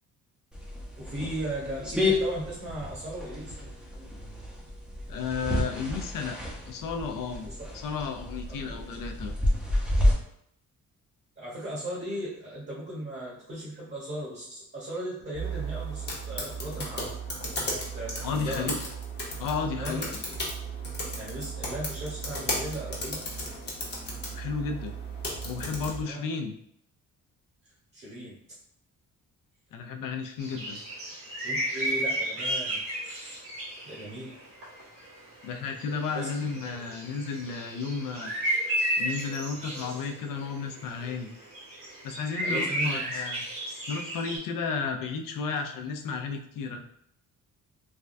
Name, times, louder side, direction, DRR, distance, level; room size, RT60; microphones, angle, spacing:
sound 1, 0.5-10.1, left 1 dB, 5° right, 0.6 m, -30 dB
voice 1, 1.0-3.6 8.5-8.8 11.4-17.1 17.9-18.7 19.8-20.1 21.2-23.2 26.0-26.2 27.9-28.4 31.4-32.8 33.8-34.4 36.1-36.3 42.4-43.0, right 1 dB, 35° right, -6 dB, 1.0 m, -37 dB
voice 2, 5.1-6.4 6.6-9.3 18.2-18.8 19.4-20.2 24.3-24.9 25.4-26.5 29.7-30.8 35.4-38.3 39.0-41.3 42.0-43.4 43.9-46.8, left 5 dB, 75° left, 4 dB, 0.5 m, -33 dB
sound 2, 15.3-26.0, right 1 dB, 30° left, 0.8 m, -35 dB
sound 3, 30.4-34.8 35.1-35.2 35.4-35.5 35.8-44.4, right 1 dB, 80° right, 1.5 m, -32 dB
3.4 x 2.2 x 2.5 m, 0.71 s
cardioid pair, 130°, 33 cm